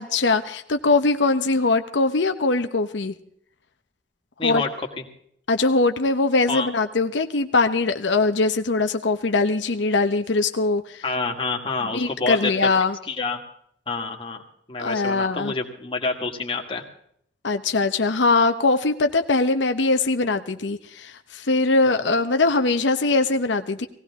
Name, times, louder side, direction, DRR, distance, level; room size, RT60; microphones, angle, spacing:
voice 1, 0.0-3.1 4.4-4.6 5.5-11.0 11.9-13.0 14.8-15.5 17.4-23.9, left 3 dB, 85° left, 7 dB, 0.9 m, -21 dB
voice 2, 11.0-12.7 13.1-13.4 13.9-14.4 14.7-16.8 21.8-21.9, left 4 dB, 30° left, 2 dB, 1.9 m, -27 dB
18.5 x 16.5 x 3.6 m, 0.67 s
head